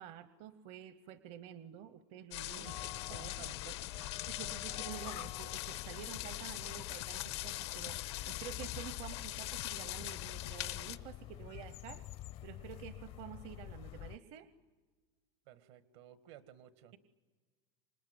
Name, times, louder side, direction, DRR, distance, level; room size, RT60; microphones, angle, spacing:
voice 1, 0.0-2.7 3.1-3.3 4.2-12.0 12.4-14.5, right 11 dB, 50° right, 13 dB, 0.9 m, -49 dB
sound 1, 2.3-11.0, left 16 dB, 85° left, 1.3 m, -42 dB
voice 2, 2.5-4.2 15.5-16.9, right 11 dB, 80° right, 12 dB, 1.7 m, -55 dB
sound 2, 2.6-14.2, left 14 dB, 45° left, 0.7 m, -48 dB
sound 3, 2.7-2.8 3.1-3.3 3.5-3.7 4.4-4.5 5.3-5.4 6.1-6.3 6.6-7.1 7.9-8.0 8.7-8.9 9.6-9.7 10.0-10.6, left 17 dB, 65° left, 1.0 m, -52 dB
26.5 x 20.0 x 9.7 m, 1.4 s
supercardioid pair, 145°, 14 cm